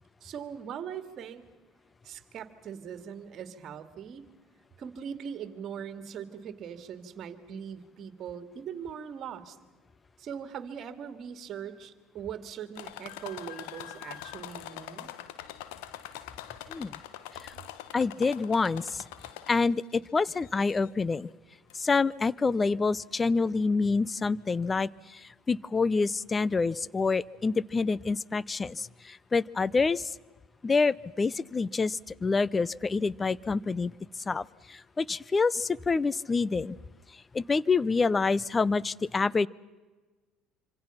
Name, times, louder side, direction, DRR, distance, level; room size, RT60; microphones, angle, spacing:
voice 1, 0.2-1.4 2.0-4.2 4.8-9.6 10.2-15.1, right 8 dB, 50° right, 9 dB, 2.3 m, -41 dB
sound 1, 12.7-19.8 20.3-20.9 21.7-21.8 22.2-22.3, left 12 dB, 75° left, 1.3 m, -44 dB
voice 2, 17.9-19.0 19.5-21.3 21.7-30.1 30.6-33.9 34.3-36.8 37.3-39.5, left 4 dB, 25° left, 22 dB, 0.7 m, -27 dB
26.5 x 26.0 x 5.8 m, 1.3 s
hypercardioid pair, 70°, 0 cm